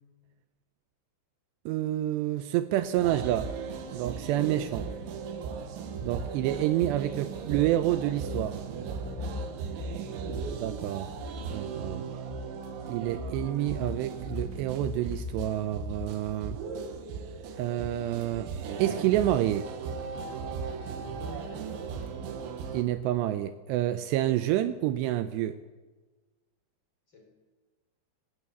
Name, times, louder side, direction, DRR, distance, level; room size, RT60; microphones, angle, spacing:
voice 1, 1.7-3.5 3.9-4.9 6.0-8.6 10.5-11.1 11.5-12.1 12.9-16.6 17.6-18.5 18.8-19.7 22.7-25.6, right 13 dB, 85° right, 11 dB, 2.4 m, -28 dB
sound 1, 2.9-22.8, right 6 dB, 70° right, 3.8 m, -37 dB
sound 2, 8.3-16.3, left 4 dB, 70° left, 8.7 m, -40 dB
voice 2, 20.8-22.2 27.1-27.3, left 1 dB, 25° left, 1 dB, 4.8 m, -49 dB
18.5 x 18.0 x 8.5 m, 1.3 s
omnidirectional pair, 5.8 m